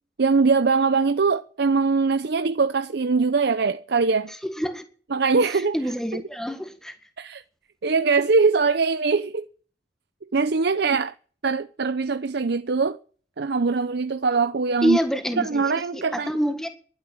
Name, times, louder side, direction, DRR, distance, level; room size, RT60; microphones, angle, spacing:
voice 1, 0.2-4.3 5.1-5.8 6.1-6.2 7.2-7.4 7.8-9.5 10.3-11.1 11.4-13.0 13.4-15.0 15.4-16.3, right 4 dB, 65° right, 0.7 m, -22 dB
voice 2, 4.4-4.8 5.7-6.9 14.8-16.7, equal, 5° left, 1.7 m, -26 dB
12.0 x 10.5 x 8.5 m
head